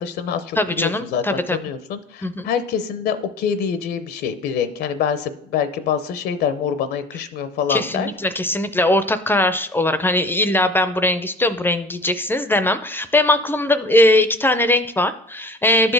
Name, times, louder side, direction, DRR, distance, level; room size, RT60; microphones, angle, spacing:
voice 1, 0.0-8.1, left 7 dB, 70° left, 11 dB, 0.6 m, -25 dB
voice 2, 0.6-1.6 2.2-2.5 7.7-15.9, left 1 dB, 10° left, 11 dB, 0.4 m, -20 dB
12.0 x 4.3 x 3.3 m, 0.76 s
cardioid pair, 110°, 17 cm